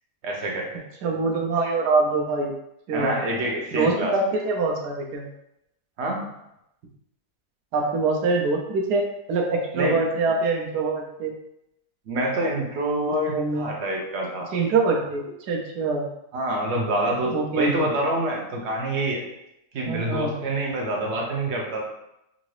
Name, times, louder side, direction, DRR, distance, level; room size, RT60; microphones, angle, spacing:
voice 1, 0.2-0.8 2.9-4.1 6.0-6.3 9.7-10.0 12.1-14.5 16.3-19.3 19.7-21.8, right 1 dB, 55° right, -1 dB, 0.9 m, -26 dB
voice 2, 1.0-2.5 2.9-3.1 3.7-5.3 7.7-9.0 9.3-11.3 13.3-13.7 14.5-16.0 17.3-17.8 19.9-20.4, right 3 dB, 85° right, 0 dB, 1.2 m, -24 dB
3.7 x 2.6 x 3.2 m, 0.83 s
omnidirectional pair, 1.7 m